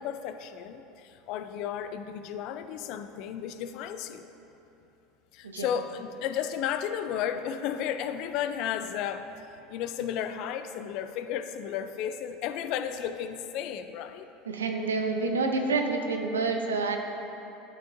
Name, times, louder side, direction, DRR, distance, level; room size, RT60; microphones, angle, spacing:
voice 1, 0.0-4.2 5.3-9.3 9.7-14.3, left 9 dB, 60° left, 10 dB, 0.4 m, -33 dB
voice 2, 14.5-17.0, right 3 dB, 85° right, 4 dB, 0.6 m, -28 dB
11.0 x 5.9 x 2.6 m, 3.0 s
hypercardioid pair, 80°, 0 cm